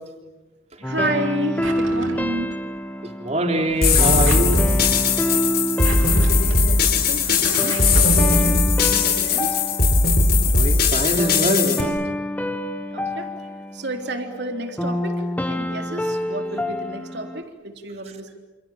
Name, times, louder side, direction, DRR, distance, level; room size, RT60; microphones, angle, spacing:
sound 1, 0.8-17.4, equal, 10° left, 1.2 m, -28 dB
voice 1, 0.8-2.6 5.9-9.6 12.9-13.3 13.7-18.3, right 1 dB, 55° right, 5 dB, 3.5 m, -31 dB
Drawer open or close, 1.6-2.5 3.6-4.7 5.6-8.2, right 2 dB, 90° right, 3.6 m, -34 dB
voice 2, 3.2-4.7 10.5-12.0, right 1 dB, 35° right, 4 dB, 3.4 m, -23 dB
sound 2, 3.8-11.8, left 4 dB, 50° left, 4.3 m, -18 dB
29.0 x 28.5 x 7.3 m, 1.1 s
head